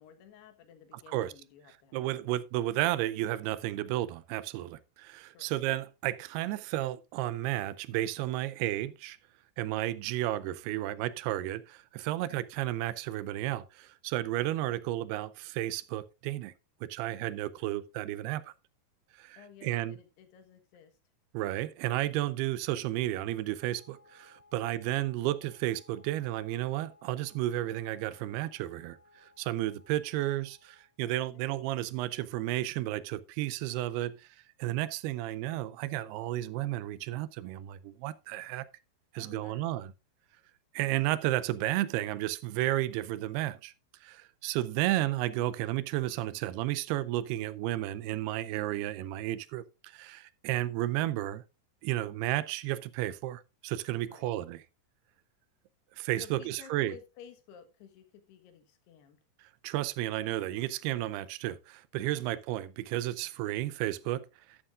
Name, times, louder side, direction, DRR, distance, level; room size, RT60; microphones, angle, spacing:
voice 1, 0.0-2.2 5.3-5.5 12.1-12.4 19.4-21.0 24.5-24.8 31.1-31.4 39.2-39.7 54.1-54.3 56.0-59.2 62.2-62.4, left 8 dB, 85° left, 3.5 m, -54 dB
voice 2, 1.9-9.2 9.6-16.5 16.8-18.5 19.1-20.0 21.3-34.3 34.6-38.6 39.1-39.9 40.7-43.7 44.0-51.4 51.8-54.6 56.0-57.0 59.6-64.6, right 15 dB, 85° right, 2.6 m, -32 dB
Wind instrument woodwind instrument, 23.5-31.0, left 3 dB, 55° right, 2.5 m, -62 dB
11.5 x 11.0 x 2.4 m
omnidirectional pair, 4.6 m